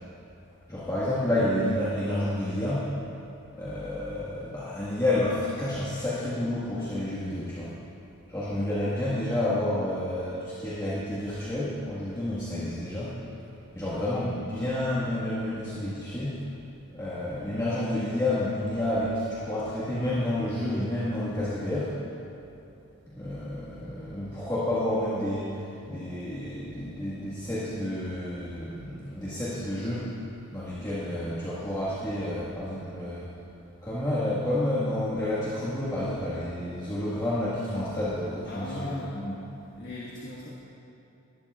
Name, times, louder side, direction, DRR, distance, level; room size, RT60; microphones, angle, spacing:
voice 1, 0.7-2.9 3.5-7.7 8.3-13.1 13.7-16.5 16.9-21.9 23.1-30.1 30.5-33.3 33.8-38.9 39.1-39.4, left 1 dB, 15° left, -11 dB, 1.6 m, -30 dB
voice 2, 38.5-39.1 39.8-40.5, left 1 dB, 45° left, -7 dB, 1.5 m, -36 dB
19.0 x 12.5 x 2.4 m, 2.9 s
head